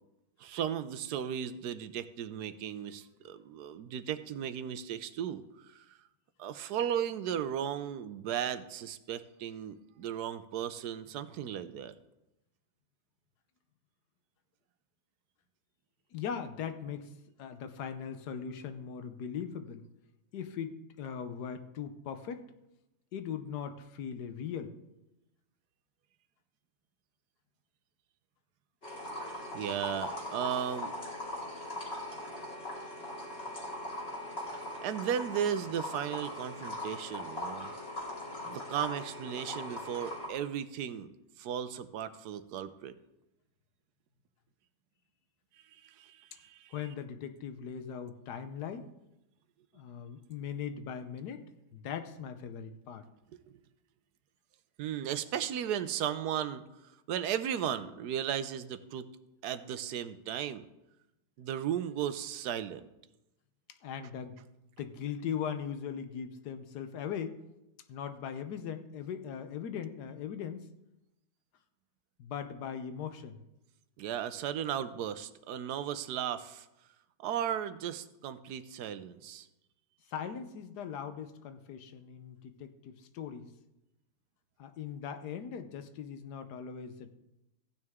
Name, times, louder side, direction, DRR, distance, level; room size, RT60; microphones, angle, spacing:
voice 1, 0.4-6.0 6.4-11.9 29.5-30.9 34.8-37.7 38.4-41.1 41.4-42.9 45.7-46.7 53.3-53.4 54.8-56.6 57.1-59.1 59.4-60.7 61.4-62.8 74.0-76.7 77.2-79.5, right 9 dB, 85° right, 13 dB, 1.2 m, -36 dB
voice 2, 16.1-17.1 17.4-19.8 20.3-22.5 23.1-24.8 46.7-48.9 49.7-53.1 63.8-64.4 64.8-67.4 67.9-70.7 72.2-73.4 80.1-83.5 84.6-87.1, left 7 dB, 85° left, 9 dB, 1.4 m, -40 dB
sound 1, 28.8-40.3, left 1 dB, 40° left, 3.0 m, -40 dB
15.0 x 9.4 x 3.6 m, 0.92 s
omnidirectional pair, 1.7 m